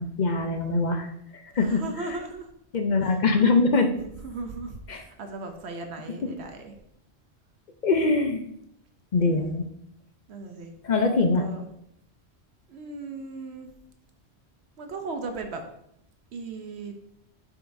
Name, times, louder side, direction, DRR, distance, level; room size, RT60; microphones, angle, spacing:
voice 1, 0.0-2.2 2.7-3.9 4.9-5.0 7.8-8.4 9.1-9.7 10.8-11.5, left 3 dB, 50° left, 5 dB, 0.6 m, -23 dB
voice 2, 1.5-2.5 3.0-3.2 4.2-6.7 9.2-9.4 10.3-10.7 11.3-11.7 12.7-13.7 14.8-15.6 16.3-17.0, right 3 dB, 75° right, 5 dB, 0.9 m, -37 dB
6.8 x 5.5 x 2.6 m, 0.75 s
omnidirectional pair, 1.1 m